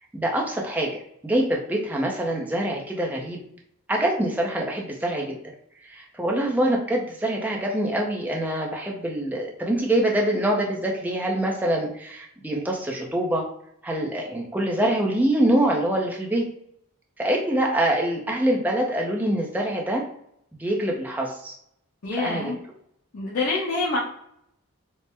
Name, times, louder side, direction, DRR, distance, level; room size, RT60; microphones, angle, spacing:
voice 1, 0.1-3.4 3.9-5.4 5.8-13.5 13.8-16.5 17.2-20.0 20.6-21.5 22.1-22.5, right 1 dB, 5° right, -1 dB, 0.5 m, -25 dB
voice 2, 22.0-22.6 23.1-24.0, left 3 dB, 80° left, -8 dB, 0.9 m, -26 dB
4.3 x 2.0 x 3.3 m, 0.72 s
head